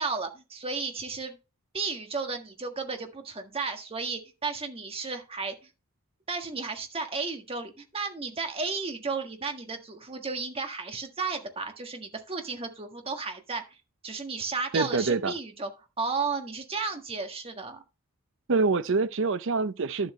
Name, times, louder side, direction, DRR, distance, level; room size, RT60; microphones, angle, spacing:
voice 1, 0.0-1.4 1.7-5.7 6.3-13.8 14.0-15.7 16.0-17.8, right 4 dB, 25° right, 1.6 m, -33 dB
voice 2, 14.7-15.3 18.5-20.1, right 4 dB, 60° right, 0.6 m, -25 dB
11.5 x 7.5 x 3.2 m
head